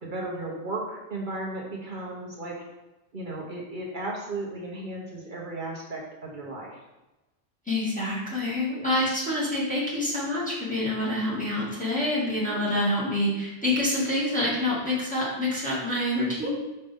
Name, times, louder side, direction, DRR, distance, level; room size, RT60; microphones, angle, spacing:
voice 1, 0.0-2.5 3.1-6.8 8.7-9.0 12.4-12.6 16.4-16.5, right 2 dB, 50° right, -2 dB, 1.2 m, -35 dB
voice 2, 7.7-16.5, left 1 dB, 5° left, -9 dB, 2.1 m, -27 dB
5.5 x 5.2 x 3.6 m, 1.1 s
omnidirectional pair, 1.1 m